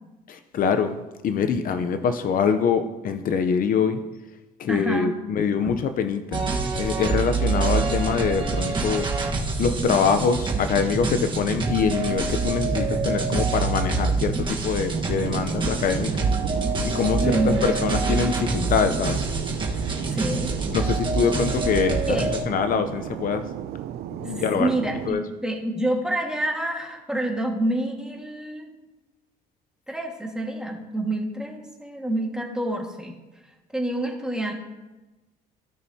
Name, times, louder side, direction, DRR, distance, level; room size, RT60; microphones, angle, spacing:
voice 1, 0.3-1.0 1.2-4.0 4.6-6.5 6.7-9.1 9.6-16.1 16.8-19.2 20.7-22.2 22.5-23.4 24.2-24.7 25.1-25.2, left 6 dB, 55° left, 8 dB, 0.7 m, -24 dB
voice 2, 4.7-5.1 5.6-5.7 17.2-17.7 20.0-20.5 22.1-22.3 24.2-28.7 29.9-33.2 33.7-34.5, right 1 dB, 5° right, 0 dB, 1.7 m, -27 dB
sound 1, 6.3-22.4, right 4 dB, 30° right, 1.3 m, -26 dB
Fixed-wing aircraft airplane, 14.9-25.1, right 11 dB, 70° right, 0.5 m, -35 dB
16.5 x 6.2 x 2.8 m, 1.1 s
cardioid pair, 110°, 17 cm